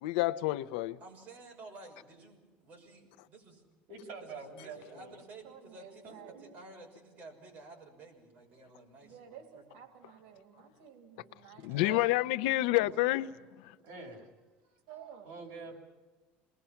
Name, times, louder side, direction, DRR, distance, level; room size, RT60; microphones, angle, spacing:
voice 1, 0.0-1.0 11.6-13.3 13.6-13.7, left 17 dB, 90° left, 0.7 m, -28 dB
voice 2, 1.0-3.6 4.3-9.6, right 2 dB, 35° right, 6.3 m, -53 dB
voice 3, 3.9-5.2 6.0-6.6 11.7-12.1 12.7-12.9 13.8-14.3 15.2-15.8, right 3 dB, 55° right, 6.9 m, -46 dB
voice 4, 5.4-6.6 8.5-8.6 9.0-12.1 14.6-15.3, right 8 dB, 85° right, 2.9 m, -53 dB
28.5 x 20.5 x 5.8 m
cardioid pair, 155°, 4 cm